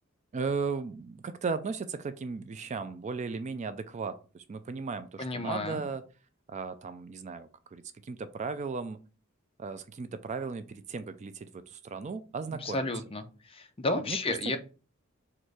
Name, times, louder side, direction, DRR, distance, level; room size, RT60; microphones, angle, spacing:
voice 1, 0.3-6.0 6.5-9.0 9.6-12.9 14.1-14.2 14.5-14.6, right 4 dB, 35° right, 11 dB, 0.3 m, -36 dB
voice 2, 5.2-5.8 12.6-14.6, left 2 dB, 25° left, 7 dB, 0.6 m, -32 dB
4.3 x 2.5 x 4.6 m, 0.35 s
head